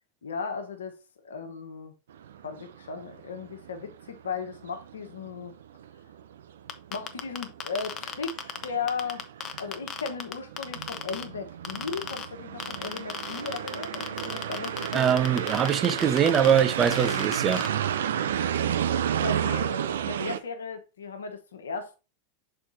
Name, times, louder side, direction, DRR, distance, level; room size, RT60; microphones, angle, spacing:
voice 1, 0.2-1.0 1.2-1.9 2.4-5.5 6.9-9.3 9.6-15.1 19.2-22.0, left 5 dB, 80° left, 1.2 m, -36 dB
sound 1, 2.1-20.4, right 9 dB, 70° right, 0.5 m, -32 dB
sound 2, 6.7-11.2 11.6-12.3 12.6-17.7, left 8 dB, 35° left, 0.9 m, -34 dB
voice 2, 14.9-17.7, right 8 dB, 30° right, 0.7 m, -23 dB
6.0 x 4.4 x 4.1 m
figure-of-eight pair, 90°, 0 cm